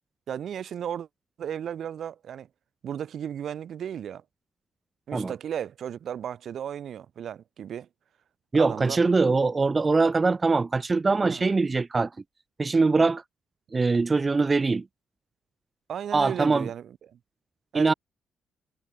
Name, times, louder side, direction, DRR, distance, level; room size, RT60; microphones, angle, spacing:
voice 1, 0.3-1.1 1.4-2.5 2.8-4.2 5.1-7.9 8.6-9.0 11.3-11.4 15.9-17.2 17.7-17.9, right 9 dB, 60° right, 0.9 m, -35 dB
voice 2, 8.5-12.1 12.6-13.2 13.7-14.8 16.1-16.7 17.7-17.9, right 3 dB, 25° right, 0.6 m, -22 dB
cardioid pair, 90°, 0 cm